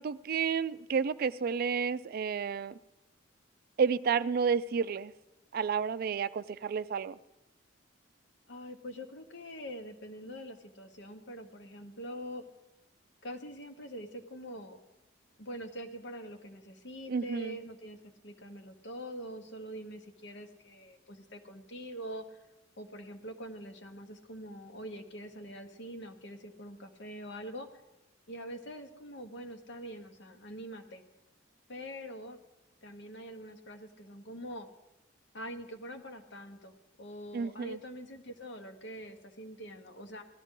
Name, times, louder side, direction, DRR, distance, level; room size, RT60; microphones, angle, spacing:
voice 1, 0.0-2.8 3.8-5.1 5.5-7.2 17.1-17.6 37.3-37.8, right 6 dB, 50° right, 15 dB, 0.3 m, -31 dB
voice 2, 8.5-12.4 13.2-14.8 15.4-22.4 22.8-27.7 28.3-31.0 31.7-32.4 32.8-34.7 35.3-36.7 37.0-40.2, equal, 65° left, 6 dB, 1.1 m, -44 dB
17.0 x 12.5 x 3.7 m, 0.96 s
head